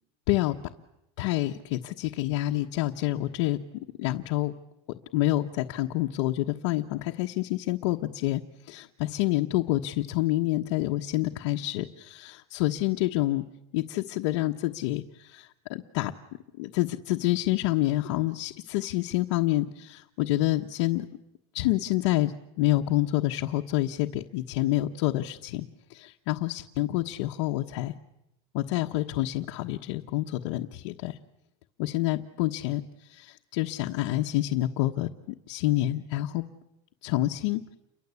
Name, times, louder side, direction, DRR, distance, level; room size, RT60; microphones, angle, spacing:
voice 1, 1.2-3.6 4.0-4.5 5.1-8.4 8.7-13.4 13.7-16.1 16.6-21.1 21.5-25.6 25.9-27.9 28.5-31.2 31.8-32.8 33.1-36.4 37.0-37.8, left 16 dB, 65° left, 1 dB, 1.3 m, -28 dB
29.5 x 23.5 x 8.4 m, 0.88 s
supercardioid pair, 160°, 15 cm